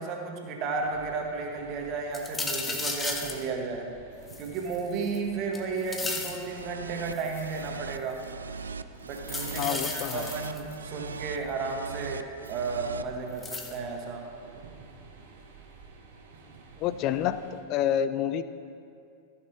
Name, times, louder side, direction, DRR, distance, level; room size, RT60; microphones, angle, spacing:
voice 1, 0.0-3.9 4.4-8.2 9.0-14.3, right 4 dB, 40° right, 2 dB, 1.5 m, -33 dB
sound 1, 0.7-17.6, right 4 dB, 55° right, 1.3 m, -52 dB
sound 2, 2.1-3.4 4.3-5.2 5.5-6.4 7.1-7.6 9.2-10.7 12.5-12.6 13.4-13.8, left 3 dB, 15° left, 0.9 m, -34 dB
sound 3, 6.4-13.0, right 5 dB, 70° right, 0.3 m, -40 dB
voice 2, 9.6-10.3 16.8-17.4 17.7-18.4, left 10 dB, 40° left, 13 dB, 0.4 m, -28 dB
14.5 x 6.6 x 4.5 m, 2.5 s
figure-of-eight pair, 90°, 0 cm